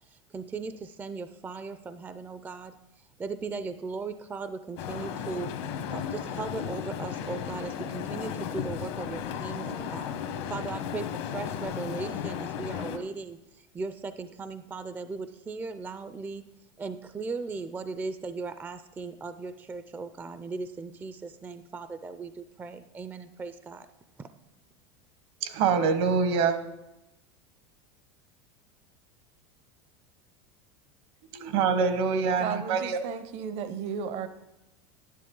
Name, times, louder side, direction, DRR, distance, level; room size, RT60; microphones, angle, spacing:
voice 1, 0.1-2.7 3.2-5.5 5.9-10.1 10.5-16.4 16.8-23.9 24.2-24.3, right 4 dB, 15° right, 11 dB, 0.4 m, -38 dB
sound 1, 4.8-13.0, left 8 dB, 70° left, 1.1 m, -35 dB
voice 2, 25.4-26.6 31.3-33.0, right 5 dB, 65° right, 10 dB, 1.1 m, -25 dB
voice 3, 32.4-34.3, right 7 dB, 50° right, 11 dB, 0.7 m, -34 dB
11.5 x 10.0 x 3.7 m, 0.95 s
supercardioid pair, 125°, 14 cm